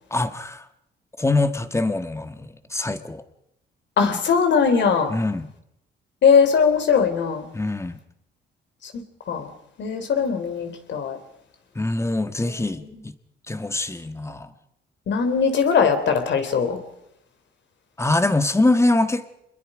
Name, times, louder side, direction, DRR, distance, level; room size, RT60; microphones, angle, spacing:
voice 1, 0.1-0.6 1.2-3.2 5.1-5.5 7.5-8.0 11.7-13.1 13.5-14.5 18.0-19.3, left 2 dB, 15° left, 10 dB, 1.5 m, -23 dB
voice 2, 4.0-5.2 6.2-7.5 8.8-8.9 9.3-9.5 9.8-11.2 15.1-16.8, left 6 dB, 65° left, 6 dB, 3.7 m, -20 dB
26.0 x 21.5 x 5.1 m, 0.79 s
cardioid pair, 90°, 20 cm